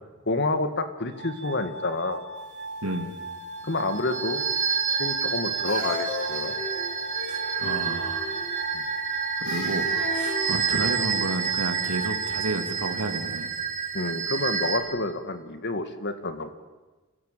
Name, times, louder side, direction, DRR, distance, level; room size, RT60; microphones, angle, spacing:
voice 1, 0.3-2.2 3.6-4.4 5.0-6.5 8.7-8.8 13.9-16.5, left 2 dB, 55° left, 10 dB, 1.8 m, -28 dB
Glass, 1.1-13.1, right 2 dB, 50° right, 2.3 m, -38 dB
voice 2, 2.8-3.1 7.3-8.4 9.4-9.9 10.1-13.5, right 2 dB, 90° right, 6 dB, 2.5 m, -31 dB
sound 1, 3.6-14.8, right 6 dB, 35° right, 2.6 m, -29 dB
sound 2, 4.9-5.3 5.6-8.7 9.4-11.3, left 2 dB, 80° left, 7.4 m, -37 dB
29.0 x 15.5 x 7.5 m, 1.2 s
head